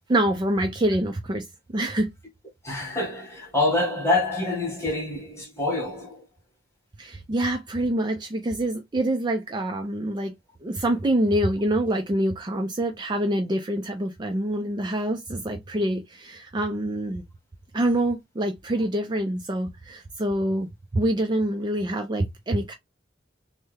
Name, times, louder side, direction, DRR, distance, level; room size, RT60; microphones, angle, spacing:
voice 1, 0.1-1.4 1.7-2.1 7.0-10.3 10.6-17.2 17.7-20.7 20.9-22.7, right 1 dB, 25° right, 0.4 m, -26 dB
voice 2, 2.6-6.2, left 2 dB, 15° left, 1.4 m, -26 dB
3.3 x 2.1 x 3.2 m
head